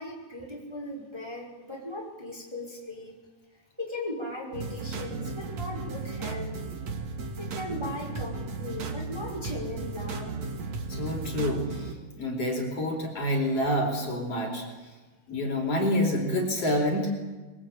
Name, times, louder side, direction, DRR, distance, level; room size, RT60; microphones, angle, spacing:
voice 1, 0.0-3.1 3.8-6.6 7.4-10.4, left 1 dB, 5° right, -2 dB, 5.2 m, -38 dB
sound 1, 4.5-11.9, right 3 dB, 55° right, 3.1 m, -35 dB
voice 2, 10.9-14.7 15.3-17.1, left 1 dB, 45° left, 1 dB, 5.3 m, -28 dB
25.5 x 23.0 x 8.7 m, 1.2 s
omnidirectional pair, 4.0 m